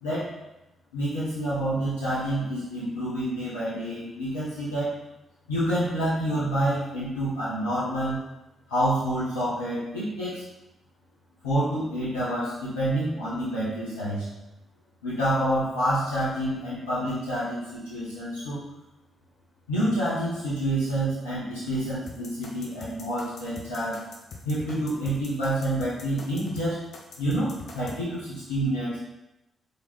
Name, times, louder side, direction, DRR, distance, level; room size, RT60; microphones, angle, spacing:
voice 1, 0.9-4.9 5.5-8.2 8.7-10.4 11.4-14.3 15.0-18.6 19.7-24.0 24.4-26.8 27.2-29.0, right 1 dB, 90° left, -11 dB, 1.5 m, -28 dB
sound 1, 22.1-28.0, left 4 dB, 60° left, 1.0 m, -43 dB
5.1 x 4.6 x 4.2 m, 0.94 s
hypercardioid pair, 40°, 0 cm